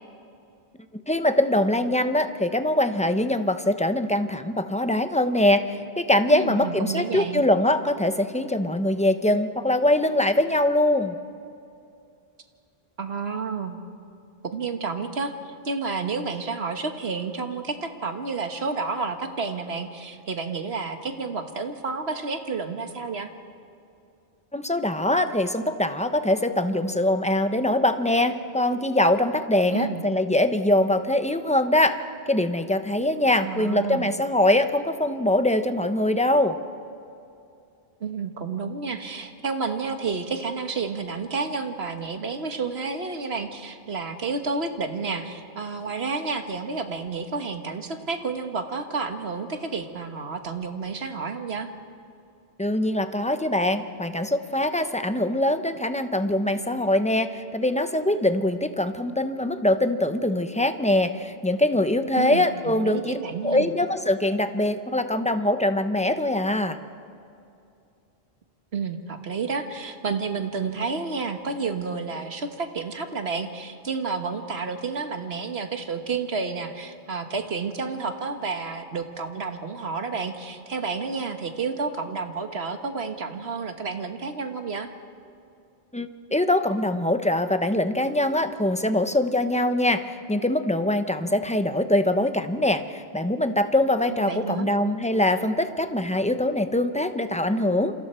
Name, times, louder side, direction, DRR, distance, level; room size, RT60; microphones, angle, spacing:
voice 1, 1.1-11.2 24.5-32.0 32.3-36.6 52.6-63.2 63.4-66.8 85.9-97.9, left 1 dB, 5° left, 8 dB, 0.8 m, -23 dB
voice 2, 6.3-7.4 13.0-13.8 14.4-23.3 29.7-30.0 33.4-34.1 38.0-51.7 62.1-63.7 68.7-84.9 94.1-94.7, right 4 dB, 75° right, 6 dB, 1.6 m, -30 dB
28.0 x 26.5 x 4.5 m, 2.5 s
omnidirectional pair, 1.1 m